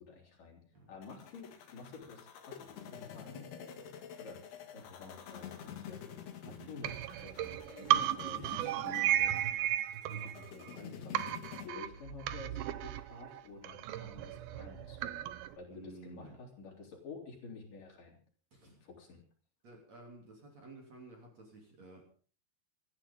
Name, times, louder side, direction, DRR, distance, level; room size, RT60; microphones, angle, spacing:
voice 1, 0.1-0.6 0.9-3.4 4.2-4.4 4.7-6.0 6.4-9.8 10.0-11.3 11.6-15.2 15.6-18.2 18.6-19.2, left 4 dB, 50° left, -1 dB, 5.0 m, -50 dB
sound 1, 1.0-11.7, left 8 dB, 65° left, 3.8 m, -49 dB
sound 2, 6.8-10.8 11.1-15.5, right 12 dB, 75° right, 2.3 m, -34 dB
voice 2, 15.7-16.4 18.5-18.8 19.6-22.0, right 2 dB, 40° right, 1 dB, 3.8 m, -53 dB
28.0 x 11.5 x 3.8 m, 0.42 s
omnidirectional pair, 5.2 m